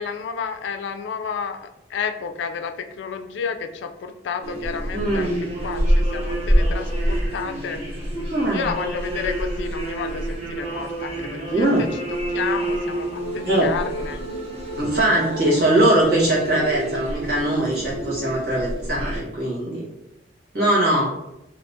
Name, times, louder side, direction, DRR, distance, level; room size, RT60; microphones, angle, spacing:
voice 1, 0.0-7.8 8.5-11.9 12.3-14.2, left 6 dB, 70° left, 7 dB, 0.3 m, -31 dB
sound 1, 4.4-19.2, right 1 dB, 35° right, 0.7 m, -27 dB
voice 2, 4.9-5.5 8.3-8.7 11.5-11.9 13.4-13.7 14.8-19.9 20.5-21.1, right 1 dB, 55° right, -6 dB, 1.3 m, -21 dB
2.7 x 2.6 x 3.5 m, 0.90 s
head